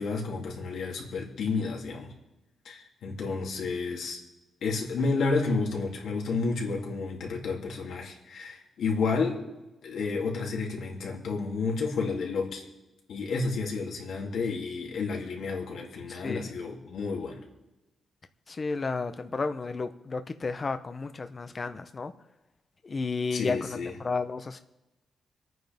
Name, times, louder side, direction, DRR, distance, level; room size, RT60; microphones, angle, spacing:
voice 1, 0.0-2.1 2.6-4.2 4.6-9.4 9.8-12.6 13.1-17.4 23.3-23.9, left 4 dB, 75° left, 0 dB, 2.9 m, -31 dB
voice 2, 16.1-16.5 18.5-22.1 22.8-24.6, left 4 dB, 30° left, 9 dB, 0.8 m, -32 dB
27.5 x 9.4 x 3.6 m, 1.0 s
wide cardioid pair, 140°, 0 cm